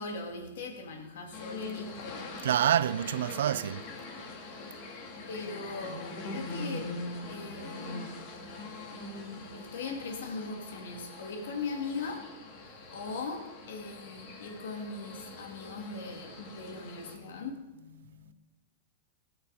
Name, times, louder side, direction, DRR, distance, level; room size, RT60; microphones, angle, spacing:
voice 1, 0.0-2.3 5.3-7.0 7.3-8.0 8.9-12.3 12.9-18.3, left 4 dB, 80° left, 2.6 m, -40 dB
sound 1, 1.3-17.1, left 2 dB, 55° left, 2.8 m, -43 dB
voice 2, 2.4-3.9, right 10 dB, 80° right, 0.4 m, -27 dB
17.5 x 8.7 x 4.3 m
hypercardioid pair, 125°, 0 cm